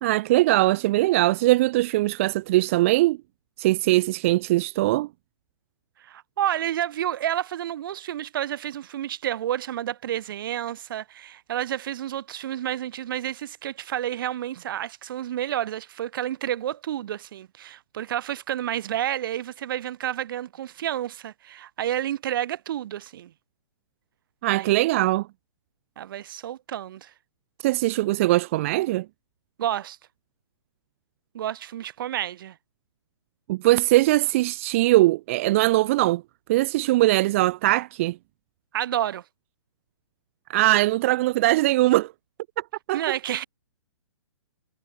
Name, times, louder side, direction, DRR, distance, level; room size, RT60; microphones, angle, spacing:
voice 1, 0.0-3.2 3.6-5.1 24.4-25.3 27.6-29.1 33.5-36.2 36.5-38.2 40.5-42.1 42.9-43.0, right 18 dB, 25° right, 0.4 m, -21 dB
voice 2, 6.0-23.3 24.5-24.7 26.0-27.1 29.6-30.0 31.3-32.6 38.7-39.2 42.9-43.4, right 11 dB, 45° right, 3.7 m, -30 dB
figure-of-eight pair, 120°, 15 cm